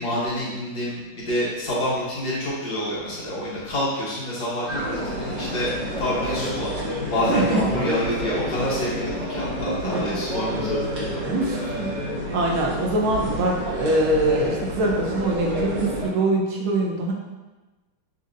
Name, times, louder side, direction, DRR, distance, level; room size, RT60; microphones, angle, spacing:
voice 1, 0.0-5.7 6.0-6.7 7.1-11.1, equal, 55° left, -8 dB, 1.6 m, -27 dB
sound 1, 4.7-16.1, equal, 60° right, 1.8 m, -29 dB
voice 2, 7.3-8.0 9.8-10.2 11.2-11.9 12.3-17.1, right 2 dB, 80° right, -1 dB, 1.6 m, -23 dB
6.2 x 2.9 x 2.5 m, 1.1 s
omnidirectional pair, 2.3 m